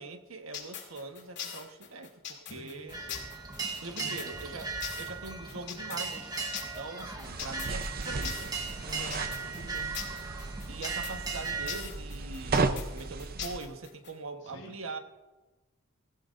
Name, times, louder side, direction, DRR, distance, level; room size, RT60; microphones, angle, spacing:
voice 1, 0.0-3.0 3.8-8.6 10.7-15.0, right 3 dB, 75° right, 6 dB, 1.2 m, -42 dB
sound 1, 0.5-14.1, left 8 dB, 55° left, 2.8 m, -41 dB
voice 2, 2.5-3.3 4.0-4.3 8.8-10.0 14.4-14.8, left 1 dB, 70° left, -2 dB, 5.2 m, -47 dB
sound 2, 2.9-11.8, right 4 dB, 20° right, 1.2 m, -38 dB
sound 3, 7.2-13.6, right 3 dB, 45° right, 0.6 m, -35 dB
17.0 x 16.5 x 2.6 m, 1.2 s
head